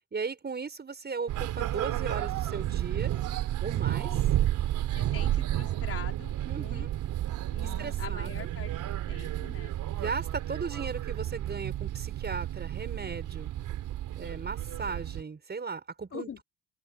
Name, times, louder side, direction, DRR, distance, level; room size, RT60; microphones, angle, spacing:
voice 1, 0.1-3.1 3.6-4.2 6.4-6.9 7.8-8.5 10.0-13.5 14.2-16.4, right 5 dB, 35° right, 6.2 m, -37 dB
sound 1, 1.3-15.2, right 13 dB, 85° right, 3.5 m, -31 dB
voice 2, 3.8-4.3 4.9-6.9 7.5-8.7 9.1-9.7 16.1-16.4, left 7 dB, 50° left, 4.4 m, -44 dB
open air
cardioid pair, 90°, 30 cm